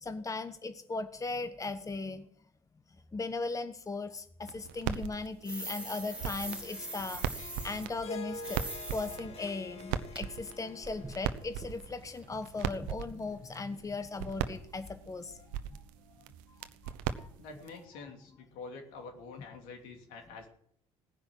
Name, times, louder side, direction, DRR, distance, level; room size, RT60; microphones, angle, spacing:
voice 1, 0.0-2.2 3.1-8.6 8.9-15.8 16.8-17.3, left 3 dB, 25° left, 10 dB, 1.2 m, -38 dB
sound 1, 4.4-17.8, right 9 dB, 70° right, 1.0 m, -40 dB
sound 2, 5.4-7.9 8.3-9.2 9.4-9.5 10.1-10.2 10.5-12.5 12.8-13.0 13.3-13.4 13.7-13.8 14.2-14.3, right 2 dB, 10° right, 2.5 m, -43 dB
Harp, 5.5-11.8, left 3 dB, 45° left, 2.1 m, -47 dB
voice 2, 17.4-20.5, left 4 dB, 70° left, 3 dB, 3.0 m, -47 dB
18.0 x 10.0 x 6.4 m, 0.66 s
hypercardioid pair, 55°, 14 cm